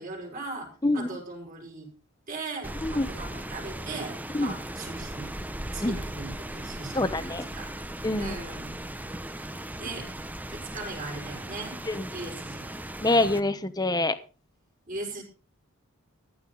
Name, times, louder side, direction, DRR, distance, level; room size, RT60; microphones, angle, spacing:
voice 1, 0.0-1.9 2.3-5.4 5.7-7.7 8.2-8.8 9.8-10.1 10.5-11.8 12.1-12.8 14.9-15.2, right 3 dB, 40° right, 1 dB, 5.6 m, -39 dB
Rain, 2.6-13.4, right 1 dB, 10° right, 0.7 m, -38 dB
voice 2, 6.9-7.4 8.0-8.4 11.9-12.1 13.0-14.2, left 2 dB, 20° left, 11 dB, 1.0 m, -25 dB
15.0 x 11.5 x 4.0 m, 0.35 s
head